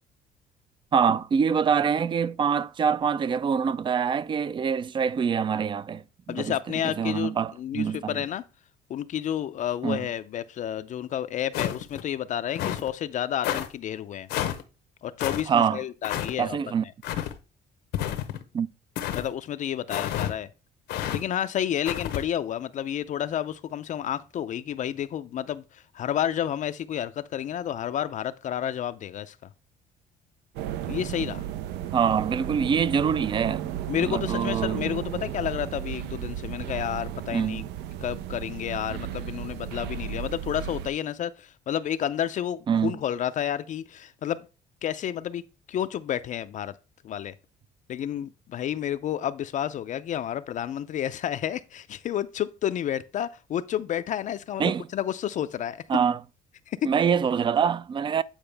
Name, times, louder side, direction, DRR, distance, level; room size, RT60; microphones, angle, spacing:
voice 1, 0.9-6.6 6.8-8.1 9.8-10.0 15.5-15.8 16.4-16.8 18.5-18.7 31.9-33.7 34.0-34.9 37.3-37.6 42.7-43.0 54.6-54.9 55.9-56.2 56.8-58.2, right 7 dB, 30° right, 0.3 m, -25 dB
voice 2, 6.3-8.4 8.9-14.3 15.0-16.6 19.1-20.5 21.1-29.4 30.9-31.4 33.9-37.6 38.0-44.5 44.8-45.4 45.7-46.7 47.0-47.3 47.9-55.8 56.7-56.9, left 10 dB, 50° left, 0.4 m, -30 dB
sound 1, 11.5-12.0 12.5-12.9 13.4-13.7 14.3-14.6 15.2-15.4 16.0-16.3 17.0-17.3 17.9-18.4 19.0-19.3 19.9-20.3 20.9-21.2 21.9-22.2, left 11 dB, 85° left, 0.8 m, -29 dB
sound 2, 30.6-40.9, right 11 dB, 85° right, 0.5 m, -34 dB
8.8 x 4.7 x 3.3 m
cardioid pair, 110°, 17 cm